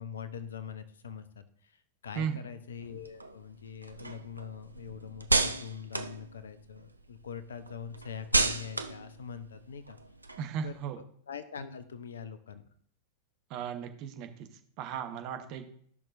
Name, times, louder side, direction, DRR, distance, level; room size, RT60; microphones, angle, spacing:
voice 1, 0.0-10.0 10.6-12.6, left 7 dB, 65° left, 13 dB, 0.8 m, -43 dB
sound 1, 2.8-7.0 7.3-10.8, right 3 dB, 85° right, 0.5 m, -33 dB
voice 2, 10.4-11.0 13.5-14.3 14.8-15.7, right 8 dB, 40° right, 6 dB, 1.1 m, -35 dB
13.5 x 6.0 x 2.6 m, 0.62 s
figure-of-eight pair, 90°, 0 cm